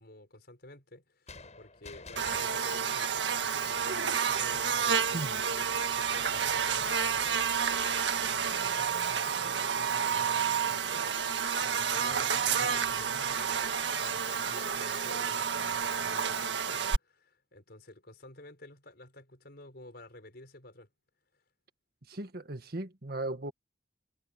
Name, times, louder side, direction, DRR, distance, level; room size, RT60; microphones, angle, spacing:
voice 1, 0.0-5.2 5.9-7.2 7.7-8.5 10.1-11.1 11.6-20.9, left 1 dB, 60° left, 5.8 m, -52 dB
sound 1, 1.3-4.6, left 4 dB, 40° left, 6.9 m, -51 dB
Buzz, 2.2-17.0, right 7 dB, 80° right, 1.8 m, -30 dB
voice 2, 22.1-23.5, right 1 dB, 60° right, 1.7 m, -37 dB
head